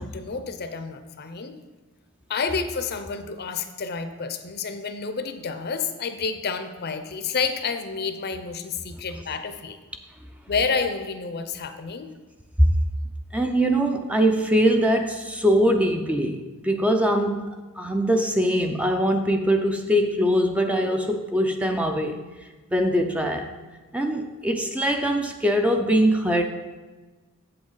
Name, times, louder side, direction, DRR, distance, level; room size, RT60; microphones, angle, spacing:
voice 1, 0.0-1.5 2.3-9.8 10.5-12.1, left 5 dB, 45° left, 8 dB, 0.6 m, -29 dB
voice 2, 13.3-22.2 22.7-23.5 23.9-26.4, equal, 5° right, 5 dB, 0.4 m, -22 dB
7.9 x 7.8 x 3.9 m, 1.3 s
head